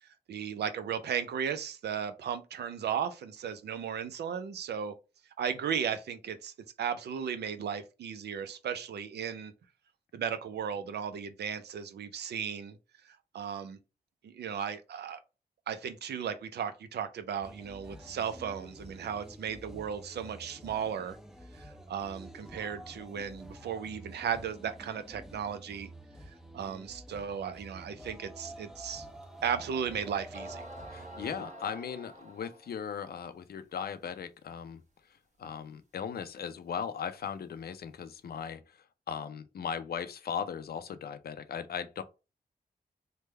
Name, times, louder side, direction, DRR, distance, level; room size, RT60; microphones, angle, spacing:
voice 1, 0.0-4.9 5.4-9.5 10.1-12.8 13.0-13.8 14.2-15.2 15.7-21.2 21.5-25.9 26.3-29.1 29.4-30.6, right 8 dB, 85° right, 0.4 m, -36 dB
sound 1, 17.4-31.4, right 1 dB, 5° right, 0.5 m, -49 dB
sound 2, 29.2-29.3 30.0-30.1 30.3-32.8, right 1 dB, 45° right, 1.2 m, -47 dB
voice 2, 30.9-34.8 35.4-38.8 39.1-42.0, left 7 dB, 70° left, 0.5 m, -38 dB
3.3 x 2.2 x 3.2 m
cardioid pair, 60°, 17 cm